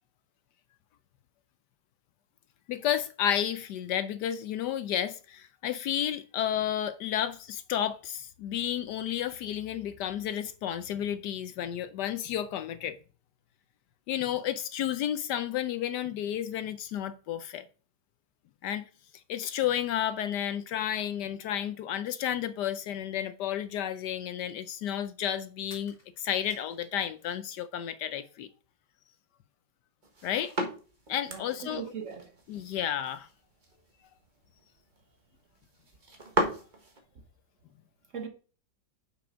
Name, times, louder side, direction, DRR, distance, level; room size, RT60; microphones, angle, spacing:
voice 1, 2.7-13.0 14.1-17.7 18.6-18.9 19.3-28.5 30.2-30.5 31.1-31.8 32.5-33.3, left 10 dB, 75° left, 1.1 m, -32 dB
sound 1, 25.7-27.6 27.9-28.7, left 2 dB, 30° left, 2.4 m, -57 dB
sound 2, 30.0-37.0, right 1 dB, 30° right, 1.2 m, -37 dB
voice 2, 31.3-32.3 38.1-38.3, right 6 dB, 45° right, 1.3 m, -39 dB
6.9 x 6.0 x 5.0 m
omnidirectional pair, 2.0 m